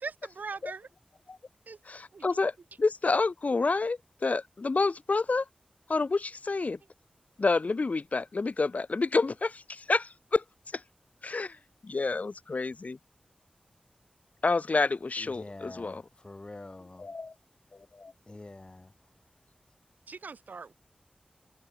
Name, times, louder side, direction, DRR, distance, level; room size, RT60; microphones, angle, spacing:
voice 1, 0.0-0.9 1.7-1.8 2.1-2.2 20.1-20.7, right 4 dB, 85° right, 6.0 m, -40 dB
voice 2, 1.9-5.5 5.9-6.8 7.4-10.4 10.7-10.8 11.2-11.6 11.8-13.0 14.4-16.0 17.0-17.3 17.9-18.1, left 3 dB, 60° left, 5.8 m, -29 dB
voice 3, 15.2-17.1 18.3-18.9, left 2 dB, 35° left, 7.6 m, -46 dB
wide cardioid pair, 85°, 3 cm